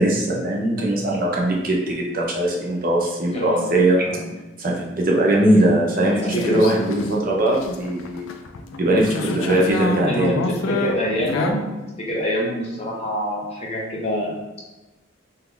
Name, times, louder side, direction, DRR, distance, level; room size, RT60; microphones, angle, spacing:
voice 1, 0.0-4.1 4.6-8.3 8.8-10.4, right 1 dB, 45° right, -2 dB, 0.6 m, -20 dB
voice 2, 3.3-3.7 4.0-4.3 6.3-6.6 9.4-9.6 10.1-11.6 12.0-14.3, equal, 30° left, -3 dB, 0.6 m, -26 dB
sound 1, 6.2-11.5, left 2 dB, 90° left, 0.4 m, -27 dB
2.8 x 2.3 x 3.7 m, 1.1 s
head